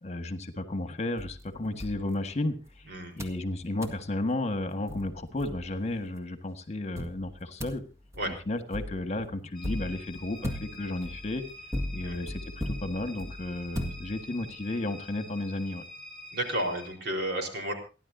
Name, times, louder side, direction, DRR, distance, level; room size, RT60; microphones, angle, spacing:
voice 1, 0.0-2.9 3.1-7.8 8.3-11.4 11.9-15.8, left 2 dB, 40° left, 8 dB, 1.7 m, -33 dB
sound 1, 1.2-2.7 3.2-3.5 3.8-4.1 4.6-4.7 4.9-6.0 7.0-14.5, left 1 dB, 15° right, 1.9 m, -38 dB
sound 2, 9.5-16.9, left 1 dB, 20° left, 6.9 m, -47 dB
voice 2, 16.3-17.7, right 1 dB, 65° right, 4 dB, 4.3 m, -32 dB
29.0 x 11.0 x 2.7 m, 0.34 s
head